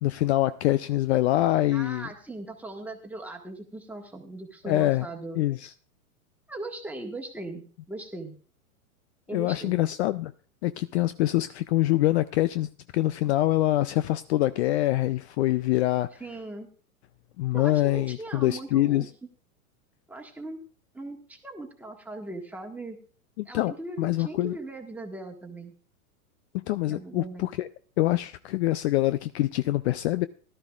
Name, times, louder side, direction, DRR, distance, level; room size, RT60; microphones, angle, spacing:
voice 1, 0.0-2.1 4.7-5.1 5.4-5.7 9.3-10.3 10.6-16.1 17.4-19.1 23.4-24.5 26.5-27.7 28.0-30.3, left 15 dB, 50° left, 0.4 m, -25 dB
voice 2, 1.7-5.4 6.5-8.3 9.3-9.8 16.2-16.7 17.5-19.1 20.1-20.6 20.9-23.0 23.4-25.7 26.8-27.5, right 2 dB, 5° right, 1.6 m, -39 dB
17.0 x 12.5 x 2.4 m
hypercardioid pair, 115°, 44 cm